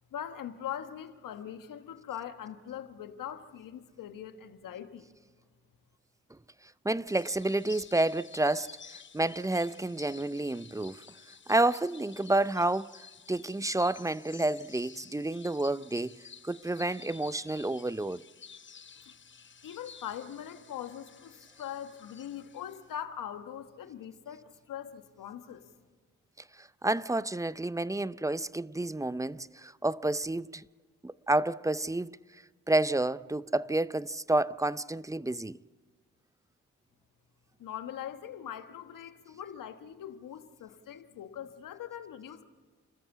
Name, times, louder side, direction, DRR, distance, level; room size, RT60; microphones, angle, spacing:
voice 1, 0.1-5.1 19.1-19.2 19.6-25.6 37.6-42.4, left 9 dB, 75° left, 1.4 m, -42 dB
voice 2, 6.8-11.0 11.5-13.0 13.3-18.2 26.6-30.6 31.0-32.2 32.7-35.6, right 2 dB, 10° right, 0.5 m, -30 dB
sound 1, 7.1-23.0, left 6 dB, 35° left, 0.8 m, -52 dB
29.5 x 14.0 x 7.1 m
hypercardioid pair, 40°, 33 cm